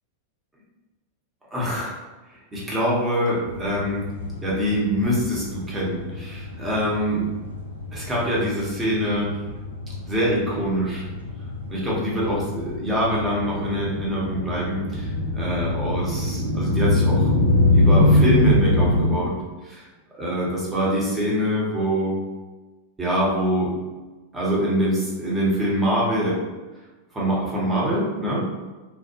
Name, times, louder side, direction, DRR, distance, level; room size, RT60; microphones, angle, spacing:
voice 1, 1.5-2.0 2.5-4.1 4.4-7.2 7.9-9.3 10.1-11.1 11.7-17.3 17.7-19.3 19.6-19.9 20.2-22.2 23.0-23.7 24.3-26.4 27.1-28.5, equal, 15° right, -5 dB, 0.9 m, -24 dB
sound 1, 3.5-19.1, left 1 dB, 85° left, 0.6 m, -24 dB
2.4 x 2.1 x 2.8 m, 1.2 s
figure-of-eight pair, 90°, 0 cm